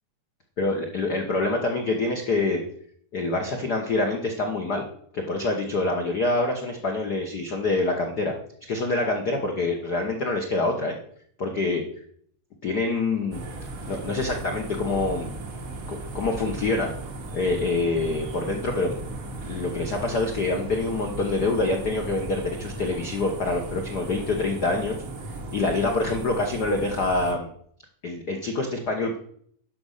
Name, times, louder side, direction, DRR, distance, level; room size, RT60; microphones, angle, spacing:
voice 1, 0.6-2.6 3.1-4.9 5.1-8.3 8.7-11.0 11.4-11.8 12.6-13.4 13.9-15.3 15.9-16.9 17.3-18.9 19.4-25.0 25.5-27.5 28.0-29.2, left 3 dB, 80° left, 3 dB, 0.8 m, -26 dB
sound 1, 13.3-27.3, right 2 dB, 80° right, 0.7 m, -36 dB
11.5 x 5.3 x 6.5 m, 0.63 s
omnidirectional pair, 3.6 m